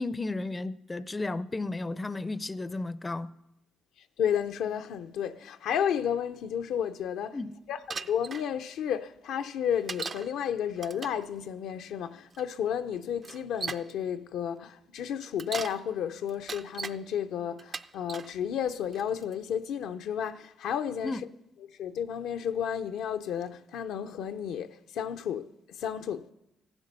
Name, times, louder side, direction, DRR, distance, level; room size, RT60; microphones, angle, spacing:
voice 1, 0.0-3.3 7.3-7.5 21.0-21.2, left 2 dB, 20° left, 0.4 m, -33 dB
voice 2, 4.2-7.4 7.7-21.2 21.7-26.3, left 8 dB, 80° left, 0.6 m, -32 dB
Bicycle, 7.9-8.4 9.9-10.3 10.8-11.2 12.3-12.4 13.2-13.9 15.2-15.8 16.3-17.0 17.6-18.3 18.9-19.3, right 5 dB, 40° right, 0.4 m, -38 dB
15.0 x 11.5 x 5.4 m
cardioid pair, 90°, 0 cm